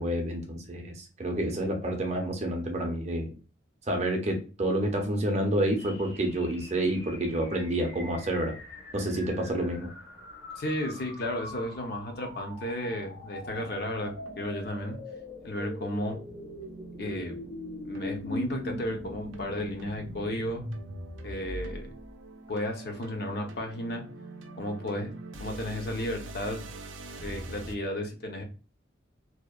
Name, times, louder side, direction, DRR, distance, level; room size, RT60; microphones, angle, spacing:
voice 1, 0.0-3.3 3.9-8.5 8.9-9.9, right 1 dB, 35° right, 3 dB, 0.5 m, -29 dB
sound 1, 5.8-22.1, left 1 dB, 70° left, 0.9 m, -42 dB
voice 2, 10.6-15.0 15.4-16.2 17.0-17.3 17.8-20.6 21.2-21.9 22.5-24.0 24.6-25.1 25.4-26.6 27.2-28.4, left 1 dB, 55° left, 3 dB, 0.5 m, -33 dB
sound 2, 12.8-27.7, right 2 dB, 85° right, 0.4 m, -46 dB
2.7 x 2.1 x 2.2 m, 0.35 s
head